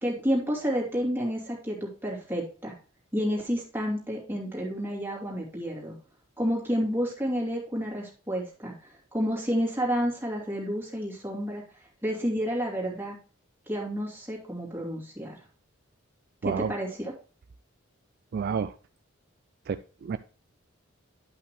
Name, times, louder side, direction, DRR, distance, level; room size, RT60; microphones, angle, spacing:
voice 1, 0.0-2.7 3.1-6.0 6.4-11.6 12.0-13.2 13.7-15.4 16.4-17.1, equal, 10° right, -3 dB, 2.6 m, -30 dB
voice 2, 18.3-18.7 19.7-20.2, right 6 dB, 50° right, 11 dB, 0.3 m, -30 dB
11.0 x 5.7 x 3.2 m, 0.39 s
head